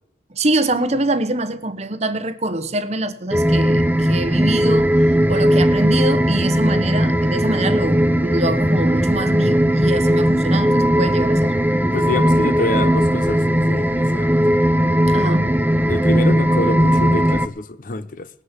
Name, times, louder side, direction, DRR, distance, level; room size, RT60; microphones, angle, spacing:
voice 1, 0.3-5.0 5.3-11.5 15.1-15.5, right 2 dB, 35° right, 0.8 m, -24 dB
sound 1, 3.3-17.5, equal, 10° right, 0.4 m, -17 dB
voice 2, 11.9-14.3 15.9-18.3, left 2 dB, 45° left, 0.6 m, -26 dB
18.5 x 6.6 x 7.4 m
head